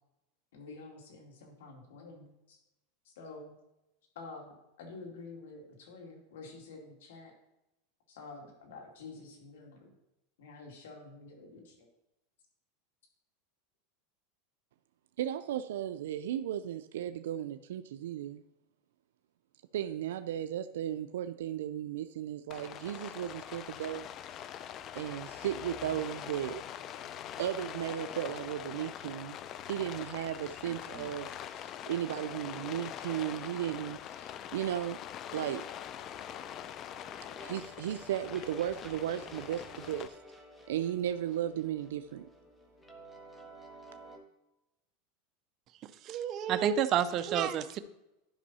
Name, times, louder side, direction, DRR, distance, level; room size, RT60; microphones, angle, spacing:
voice 1, 0.5-2.6 3.0-3.5 4.1-7.3 8.1-9.9 10.4-11.9, left 3 dB, 85° left, 1 dB, 2.5 m, -49 dB
voice 2, 15.2-18.4 19.7-24.1 24.9-26.6 27.4-29.4 29.7-35.0 35.3-35.6 37.4-40.2 40.7-42.3, right 11 dB, 85° right, 10 dB, 0.3 m, -35 dB
Rain, 22.5-40.1, left 10 dB, 35° left, 0.4 m, -43 dB
sound 1, 36.0-44.2, right 1 dB, 5° left, 1.2 m, -53 dB
voice 3, 46.0-47.8, right 9 dB, 40° right, 10 dB, 0.5 m, -29 dB
11.5 x 5.4 x 4.1 m, 0.90 s
supercardioid pair, 140°, 0 cm